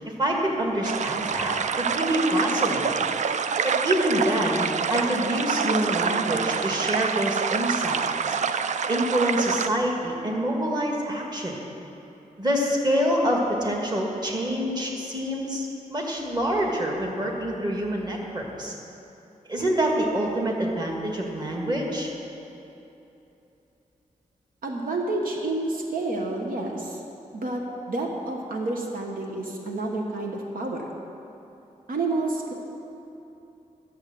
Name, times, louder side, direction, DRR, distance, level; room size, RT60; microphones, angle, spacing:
voice 1, 0.0-3.1 3.6-8.0 8.2-8.4 8.9-11.6 12.4-18.7 19.5-22.1, equal, 30° right, -1 dB, 1.7 m, -26 dB
sound 1, 0.8-9.7, right 6 dB, 55° right, 0.4 m, -26 dB
voice 2, 24.6-27.0 27.3-30.9 31.9-32.5, right 2 dB, 80° right, 1 dB, 1.2 m, -29 dB
11.5 x 7.2 x 7.5 m, 3.0 s
wide cardioid pair, 140°, 14 cm